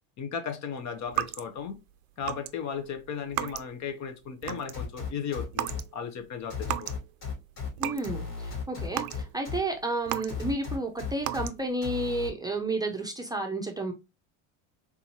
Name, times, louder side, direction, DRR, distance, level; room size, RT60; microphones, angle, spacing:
voice 1, 0.2-1.8 2.2-6.9, left 7 dB, 45° left, 0.8 m, -36 dB
sound 1, 1.1-1.8 2.2-2.5 2.8-3.9 4.2-4.9 5.5-5.9 6.2-7.1 7.4-8.2 8.5-10.7 11.2-11.8, right 14 dB, 60° right, 0.5 m, -34 dB
sound 2, 4.7-5.8 6.5-7.7 8.0-9.6 10.3-11.5 11.8-12.3, left 6 dB, 75° left, 2.4 m, -35 dB
voice 2, 7.8-13.9, right 2 dB, 10° right, 0.6 m, -31 dB
3.7 x 2.8 x 2.8 m
supercardioid pair, 110°, 39 cm